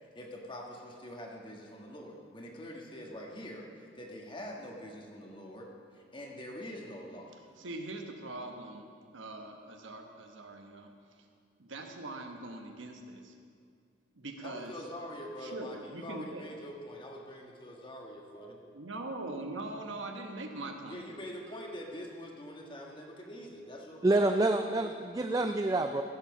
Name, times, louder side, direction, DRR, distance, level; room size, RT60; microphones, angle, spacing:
voice 1, 0.0-7.4 14.4-18.6 20.9-24.3, equal, 25° left, 0 dB, 1.5 m, -44 dB
voice 2, 7.6-8.9 9.1-10.9 11.6-13.3 14.2-14.7 15.4-16.4 18.7-21.0 24.7-24.8, right 2 dB, 90° right, 4 dB, 1.2 m, -42 dB
voice 3, 24.0-26.0, right 2 dB, 20° right, 6 dB, 0.3 m, -27 dB
15.5 x 7.4 x 6.0 m, 2.2 s
head